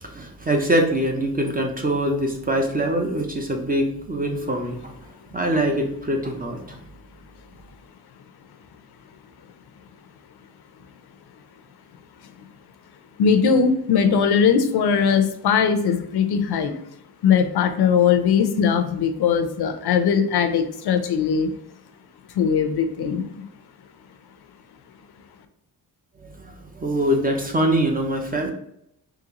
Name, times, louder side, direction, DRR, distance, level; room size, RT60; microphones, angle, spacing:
voice 1, 0.0-5.0 5.3-6.8 26.2-28.5, right 1 dB, 20° right, 2 dB, 0.4 m, -23 dB
voice 2, 13.2-16.8 17.2-21.5 22.3-23.4, left 6 dB, 70° left, 8 dB, 0.5 m, -20 dB
3.8 x 3.4 x 2.8 m, 0.75 s
wide cardioid pair, 180°, 41 cm